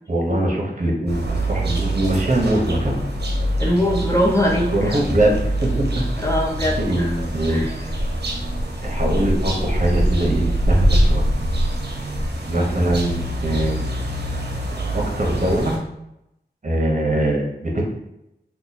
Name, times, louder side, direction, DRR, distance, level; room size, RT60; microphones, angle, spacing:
voice 1, 0.1-3.0 4.7-5.3 5.6-5.7 6.8-7.7 8.8-11.3 12.4-14.0 14.9-15.7 16.6-17.8, right 1 dB, 45° right, -1 dB, 1.0 m, -22 dB
sound 1, 1.1-15.8, right 1 dB, 75° right, 0.7 m, -24 dB
voice 2, 3.6-5.0 6.2-7.1 7.5-7.7, left 1 dB, 15° left, -3 dB, 0.9 m, -21 dB
2.9 x 2.3 x 4.0 m, 0.83 s
wide cardioid pair, 55°, 18 cm